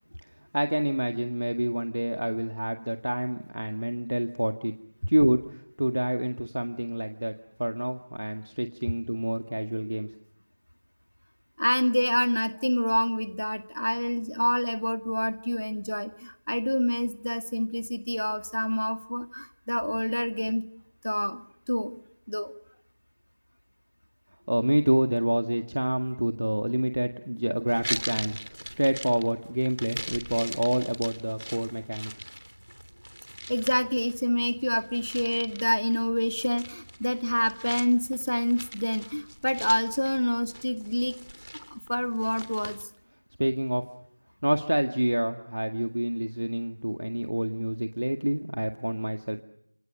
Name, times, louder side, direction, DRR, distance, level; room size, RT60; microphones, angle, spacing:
voice 1, 0.5-4.7 5.1-7.3 7.6-10.1 24.5-32.3 43.4-43.8 44.4-49.4, right 1 dB, 50° right, 7 dB, 1.9 m, -27 dB
voice 2, 11.6-20.7 21.0-22.0 22.3-22.5 33.5-41.2 41.7-42.8, equal, 65° left, 9 dB, 1.9 m, -27 dB
sound 1, 27.7-42.9, equal, 80° right, 3.0 m, -41 dB
30.0 x 28.0 x 6.7 m, 0.73 s
figure-of-eight pair, 175°, 0 cm